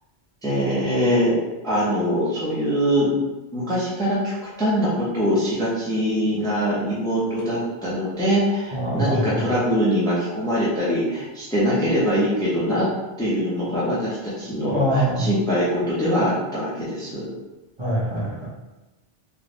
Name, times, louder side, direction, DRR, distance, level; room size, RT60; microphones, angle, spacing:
voice 1, 0.4-1.4 1.6-3.1 3.5-12.9 13.2-17.3, equal, 5° left, -8 dB, 0.8 m, -23 dB
voice 2, 8.7-9.4 14.7-15.3 17.8-18.5, right 1 dB, 30° right, -9 dB, 0.9 m, -23 dB
3.5 x 2.5 x 3.1 m, 1.1 s
omnidirectional pair, 1.2 m